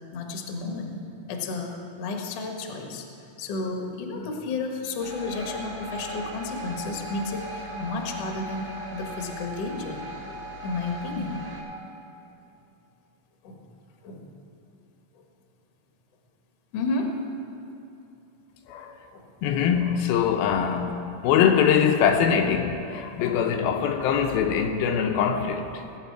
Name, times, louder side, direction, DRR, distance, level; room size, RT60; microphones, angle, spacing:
voice 1, 0.1-1.0 1.3-3.1 3.4-10.0 10.6-11.4 13.4-13.6 14.0-14.3 16.7-17.1 19.1-19.2, left 3 dB, 60° left, 1.8 m, -32 dB
sound 1, 5.0-11.6, right 1 dB, 15° right, 2.4 m, -38 dB
voice 2, 19.4-25.7, left 7 dB, 80° left, 2.4 m, -23 dB
19.5 x 8.8 x 4.6 m
omnidirectional pair, 4.3 m